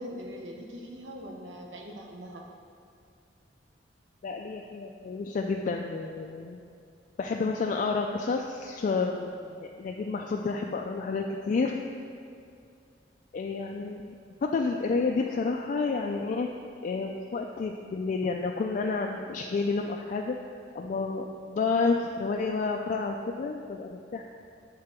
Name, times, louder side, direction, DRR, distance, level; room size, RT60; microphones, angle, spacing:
voice 1, 0.0-2.4, equal, 90° right, 1 dB, 0.9 m, -41 dB
voice 2, 4.2-6.6 7.2-11.8 13.3-14.1 14.4-16.5 16.8-24.2, left 4 dB, 45° left, 1 dB, 0.3 m, -30 dB
8.6 x 3.8 x 4.4 m, 2.3 s
head